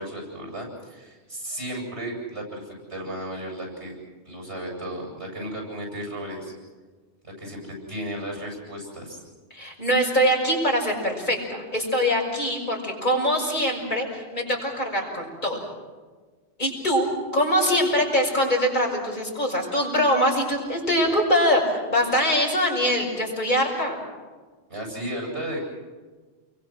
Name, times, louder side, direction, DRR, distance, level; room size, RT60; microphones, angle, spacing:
voice 1, 0.0-3.9 4.2-6.5 7.2-9.2 24.7-25.6, right 1 dB, 90° right, 1 dB, 8.2 m, -34 dB
voice 2, 9.5-15.6 16.6-17.1 17.3-24.0, equal, 45° left, -1 dB, 6.2 m, -23 dB
29.5 x 23.0 x 6.3 m, 1.4 s
omnidirectional pair, 1.1 m